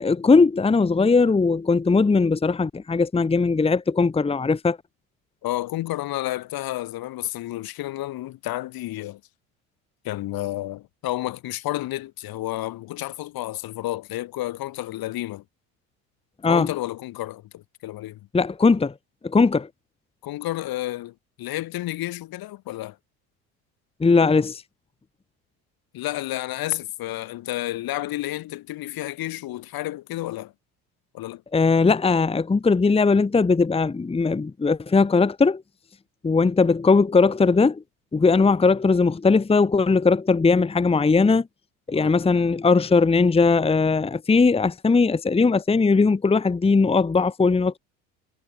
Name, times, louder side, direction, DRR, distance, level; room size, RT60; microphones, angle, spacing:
voice 1, 0.0-4.8 16.4-16.7 18.3-18.9 19.2-19.7 24.0-24.6 31.5-35.6 36.2-37.8 38.1-41.5 41.9-47.8, left 4 dB, 15° left, 1.1 m, -19 dB
voice 2, 5.4-9.2 10.0-15.4 16.5-18.2 20.2-23.0 25.9-30.5 31.1-31.4 41.9-42.1, left 16 dB, 55° left, 2.1 m, -31 dB
supercardioid pair, 85°, 42 cm